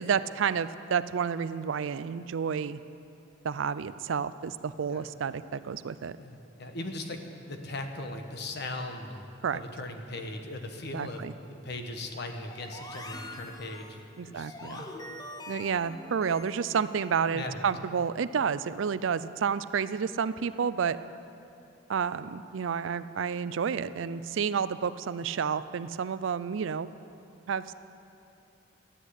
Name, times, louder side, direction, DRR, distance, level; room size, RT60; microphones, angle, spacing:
voice 1, 0.0-2.8 3.4-6.1 9.4-9.6 10.9-11.3 14.2-14.8 15.5-21.0 21.9-26.9 27.5-27.7, right 6 dB, 70° right, 15 dB, 0.4 m, -30 dB
voice 2, 6.2-15.0 17.2-17.7, left 2 dB, 55° left, 5 dB, 1.2 m, -39 dB
sound 1, 12.5-17.4, left 1 dB, 20° left, 0.9 m, -44 dB
13.5 x 10.0 x 8.1 m, 2.7 s
head